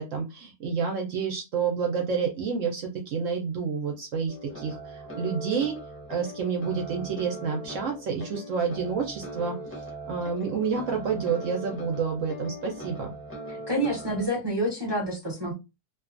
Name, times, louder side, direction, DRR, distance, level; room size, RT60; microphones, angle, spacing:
voice 1, 0.0-5.8 6.1-13.1, right 6 dB, 65° right, 0.8 m, -29 dB
sound 1, 4.3-14.3, right 1 dB, 15° left, 0.6 m, -40 dB
voice 2, 13.5-15.5, right 1 dB, 40° right, 0.3 m, -28 dB
2.6 x 2.3 x 2.4 m
omnidirectional pair, 1.7 m